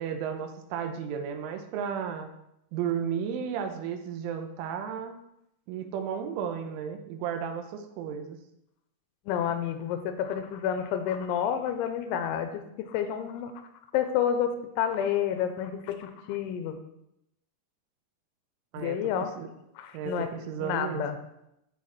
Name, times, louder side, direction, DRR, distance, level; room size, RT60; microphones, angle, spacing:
voice 1, 0.0-2.3 2.7-5.2 5.7-8.4 18.7-19.1 19.4-19.5 19.9-21.1, right 7 dB, 90° right, 6 dB, 3.3 m, -33 dB
voice 2, 9.3-13.5 13.9-16.8 18.8-19.3 19.8-20.3 20.6-21.2, left 9 dB, 90° left, 8 dB, 3.1 m, -29 dB
12.5 x 4.6 x 4.3 m, 0.82 s
omnidirectional pair, 5.4 m